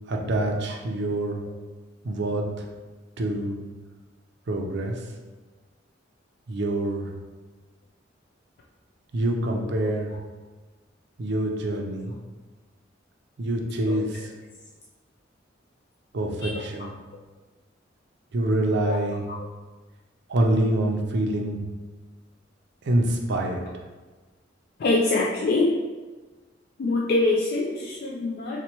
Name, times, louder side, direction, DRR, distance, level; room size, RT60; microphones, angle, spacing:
voice 1, 0.1-1.4 2.0-2.7 3.2-3.6 4.5-5.0 6.5-7.1 9.1-10.2 11.2-12.1 13.4-14.2 16.1-16.9 18.3-19.2 20.3-21.6 22.8-23.6, right 1 dB, 60° right, 1 dB, 0.5 m, -26 dB
voice 2, 24.8-25.8 26.8-28.6, left 2 dB, 55° left, -4 dB, 0.4 m, -24 dB
4.2 x 2.1 x 2.9 m, 1.3 s
head